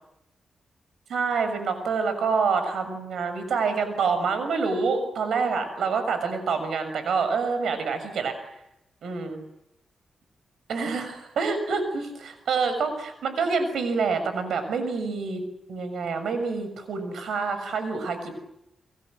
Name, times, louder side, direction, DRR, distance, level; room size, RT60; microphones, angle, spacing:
voice 1, 1.1-8.4 9.0-9.4 10.7-15.4 15.7-18.3, right 5 dB, 90° right, 9 dB, 6.7 m, -27 dB
30.0 x 23.5 x 7.8 m, 0.85 s
cardioid pair, 100°, 0 cm